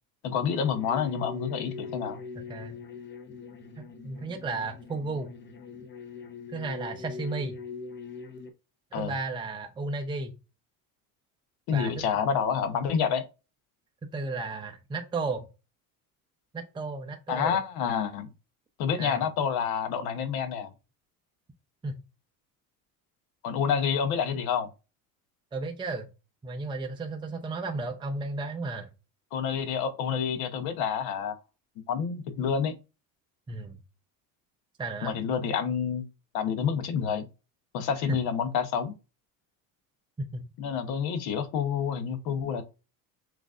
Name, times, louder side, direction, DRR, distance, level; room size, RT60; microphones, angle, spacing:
voice 1, 0.2-2.2 8.9-9.1 11.7-13.2 17.3-18.3 18.8-20.7 23.4-24.7 29.3-31.4 31.9-32.8 35.0-36.1 36.3-37.3 37.7-38.9 40.6-42.6, left 7 dB, 65° left, 1.0 m, -28 dB
sound 1, 0.6-8.5, left 4 dB, 25° left, 0.7 m, -42 dB
voice 2, 2.3-2.8 3.8-5.3 6.5-7.6 8.9-10.3 11.7-11.9 14.1-15.5 16.5-17.6 19.0-19.3 21.8-22.0 25.5-26.1 26.4-28.9 33.5-33.8 34.8-35.2 38.1-38.2 40.2-40.5, right 3 dB, 10° right, 0.5 m, -34 dB
6.1 x 2.5 x 2.4 m
supercardioid pair, 105°, 40 cm